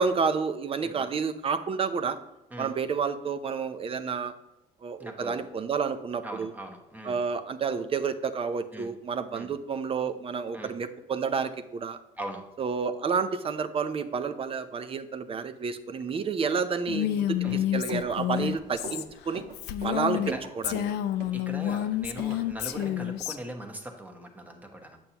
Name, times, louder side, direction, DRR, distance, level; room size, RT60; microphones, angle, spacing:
voice 1, 0.0-2.2 2.6-4.3 4.8-6.5 7.0-12.0 12.6-19.4 19.8-20.8, right 5 dB, 35° right, 10 dB, 0.6 m, -30 dB
voice 2, 5.0-5.4 6.2-7.2 8.7-8.9 9.3-9.5 10.5-10.7 12.2-12.5 17.4-17.6 20.3-20.4 21.3-25.0, right 1 dB, 10° right, 2 dB, 1.2 m, -40 dB
Female speech woman speaking, 16.9-20.3 20.6-23.4, left 12 dB, 80° left, 0.5 m, -29 dB
Run, 17.3-22.4 22.7-22.9, right 3 dB, 75° right, 2.0 m, -42 dB
8.8 x 6.9 x 2.9 m, 0.92 s
cardioid pair, 110°, 17 cm